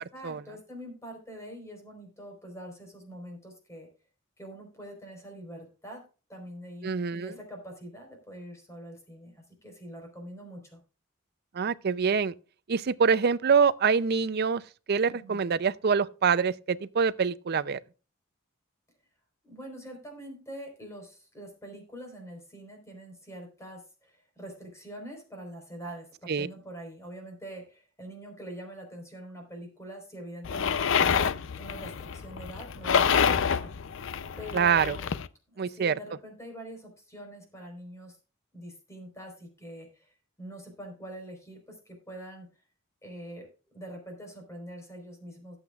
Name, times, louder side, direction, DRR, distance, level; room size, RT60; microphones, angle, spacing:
voice 1, 0.0-3.9 4.4-6.0 6.3-10.8 15.1-15.4 19.4-31.3 31.6-33.7 34.4-35.1 35.5-38.2 38.5-40.1 40.4-42.5 43.0-43.5 43.7-45.6, right 1 dB, 15° left, 4.3 m, -44 dB
voice 2, 6.8-7.3 11.5-12.3 12.7-14.6 14.9-17.8 26.3-26.5 34.5-35.0 35.6-35.9, right 6 dB, 50° right, 0.5 m, -25 dB
sound 1, 30.4-35.3, left 7 dB, 65° left, 0.5 m, -27 dB
17.5 x 8.0 x 2.4 m
head